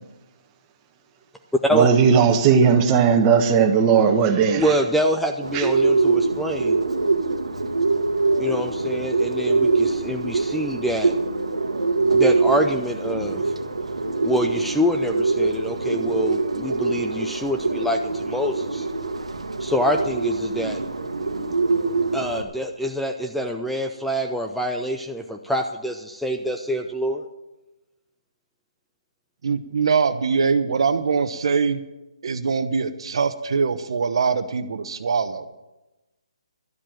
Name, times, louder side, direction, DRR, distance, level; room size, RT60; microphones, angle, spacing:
voice 1, 1.7-4.6 5.5-5.6, right 6 dB, 20° right, 5 dB, 1.3 m, -17 dB
voice 2, 4.6-6.8 8.4-11.1 12.1-13.5 14.2-18.8 19.6-20.8 22.1-27.2, equal, ahead, 3 dB, 0.5 m, -25 dB
Bird, 5.4-22.4, right 3 dB, 85° right, 1.3 m, -23 dB
voice 3, 29.4-31.8 32.2-35.5, right 5 dB, 60° right, 11 dB, 1.0 m, -22 dB
12.5 x 7.5 x 8.9 m, 1.0 s
figure-of-eight pair, 150°, 3 cm